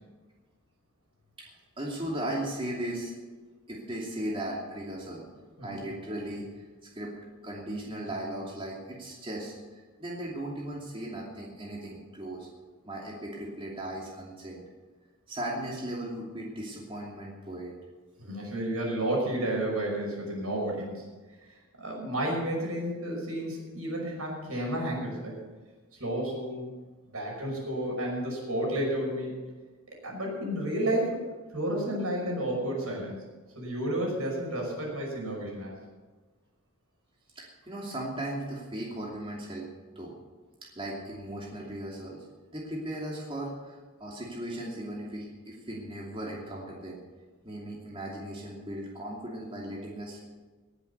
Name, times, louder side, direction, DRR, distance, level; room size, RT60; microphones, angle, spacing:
voice 1, 1.4-3.1 3.7-5.2 5.6-6.7 6.9-7.1 7.4-12.5 12.8-14.6 15.3-17.7 37.3-40.1 40.7-42.2 42.5-47.0 47.4-50.3, right 1 dB, 25° right, -3 dB, 2.7 m, -37 dB
voice 2, 18.2-21.0 21.7-25.4 25.9-26.8 27.1-29.3 29.9-31.2 31.5-33.2 33.6-35.8, right 1 dB, 75° right, -1 dB, 5.7 m, -31 dB
18.5 x 8.0 x 6.9 m, 1.3 s
head